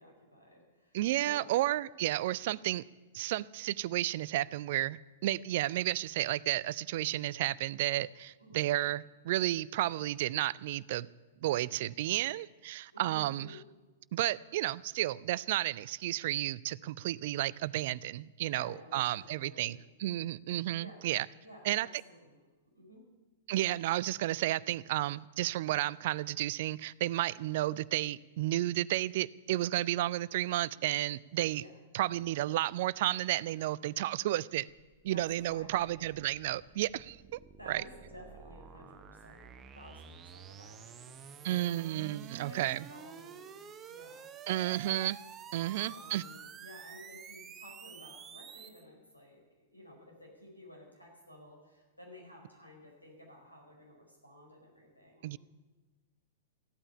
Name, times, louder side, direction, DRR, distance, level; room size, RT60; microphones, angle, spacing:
voice 1, 0.0-1.5 8.4-8.6 12.9-13.6 18.4-19.9 20.7-21.1 21.4-22.4 22.7-23.0 31.6-31.7 35.1-36.1 37.6-39.5 39.7-42.0 42.4-44.3 45.5-55.3, equal, 85° left, -1 dB, 4.9 m, -54 dB
voice 2, 0.9-2.8 3.1-11.1 11.4-13.6 14.1-21.3 21.6-21.9 23.5-31.6 31.9-34.7 35.0-37.4 37.7-37.8 41.4-42.9 44.5-45.2 45.5-46.2 55.2-55.4, right 15 dB, 50° right, 22 dB, 0.4 m, -32 dB
sound 1, 34.7-48.8, right 7 dB, 20° right, 0.8 m, -50 dB
14.5 x 8.9 x 9.9 m, 1.2 s
figure-of-eight pair, 100°, 0 cm